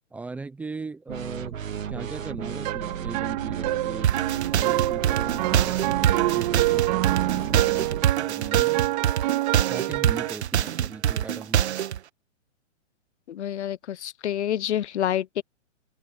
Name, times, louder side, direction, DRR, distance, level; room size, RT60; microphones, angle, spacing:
voice 1, 0.1-1.6 1.9-4.2 4.5-8.8 9.7-11.7, right 4 dB, 5° right, 0.8 m, -39 dB
sound 1, 1.1-8.1, right 8 dB, 85° right, 2.3 m, -34 dB
sound 2, 2.7-10.3, right 18 dB, 35° right, 2.0 m, -26 dB
sound 3, 4.0-12.0, right 10 dB, 55° right, 1.7 m, -25 dB
voice 2, 13.3-15.4, left 11 dB, 60° left, 1.0 m, -28 dB
open air
hypercardioid pair, 160°, 38 cm